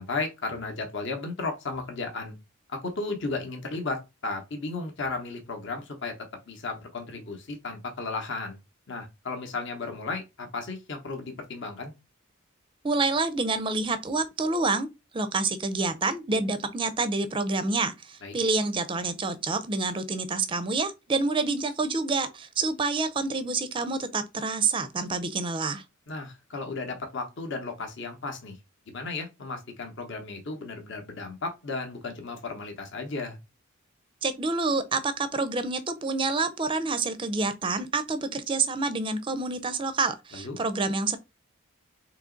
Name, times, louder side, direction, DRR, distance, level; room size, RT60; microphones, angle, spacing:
voice 1, 0.0-2.3 2.7-6.2 6.5-8.6 8.9-11.9 18.2-18.3 26.1-28.6 28.9-33.4 40.3-40.6, left 3 dB, 55° left, 0.9 m, -34 dB
voice 2, 12.8-14.9 15.1-25.8 34.2-41.2, right 3 dB, 25° right, 0.4 m, -28 dB
3.7 x 2.9 x 3.8 m
head